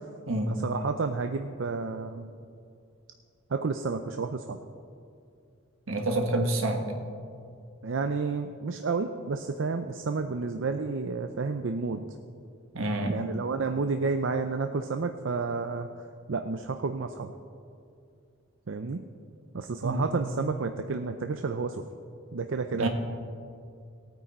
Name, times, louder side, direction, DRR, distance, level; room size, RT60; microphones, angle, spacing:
voice 1, 0.5-2.3 3.5-4.6 7.8-12.1 13.1-15.9 16.3-17.3 18.7-19.0 19.5-21.8 22.3-22.9, right 4 dB, 70° right, 7 dB, 0.5 m, -30 dB
voice 2, 5.9-6.8 12.7-13.2 19.8-20.1 22.8-22.9, right 1 dB, 85° right, 3 dB, 1.5 m, -27 dB
18.0 x 9.3 x 4.3 m, 2.4 s
head